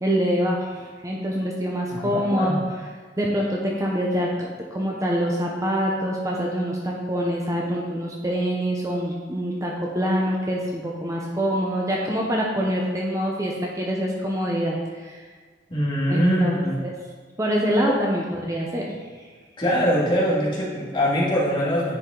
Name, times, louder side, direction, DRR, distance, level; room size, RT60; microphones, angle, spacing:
voice 1, 0.0-2.6 3.2-4.3 4.7-15.2 16.1-16.9 17.4-18.9 19.2-19.3, equal, 20° right, -2 dB, 0.7 m, -25 dB
voice 2, 1.9-2.6 15.7-16.8 17.8-17.9 19.6-22.0, equal, 25° left, -7 dB, 2.0 m, -23 dB
9.8 x 4.9 x 3.8 m, 1.5 s
head